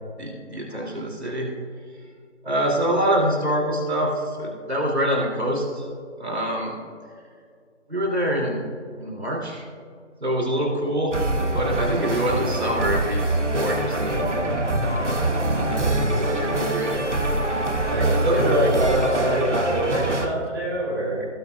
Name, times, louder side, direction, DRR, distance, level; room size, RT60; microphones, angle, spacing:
voice 1, 0.2-1.5 2.4-5.9 6.2-6.7 7.9-8.6 9.0-9.7 10.2-11.2 11.5-14.3 14.6-14.9 15.6-17.0 18.2-18.4, equal, 60° right, -1 dB, 2.6 m, -25 dB
sound 1, 11.1-20.3, right 1 dB, 80° right, 1.3 m, -24 dB
voice 2, 15.5-16.2 17.9-18.0 18.3-21.3, right 1 dB, 20° right, -6 dB, 2.3 m, -24 dB
17.5 x 7.4 x 2.3 m, 2.2 s
figure-of-eight pair, 160°, 36 cm